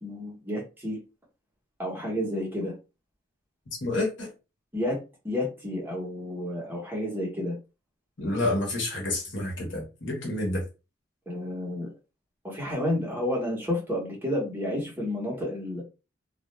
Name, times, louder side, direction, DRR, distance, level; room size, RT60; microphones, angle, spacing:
voice 1, 0.0-1.0 1.8-2.7 4.7-5.0 5.2-7.5 11.3-11.9 12.4-15.8, left 1 dB, 10° right, 0.8 m, -30 dB
voice 2, 3.8-4.3 8.2-10.6, left 2 dB, 65° left, 1.0 m, -29 dB
2.4 x 2.1 x 3.0 m
head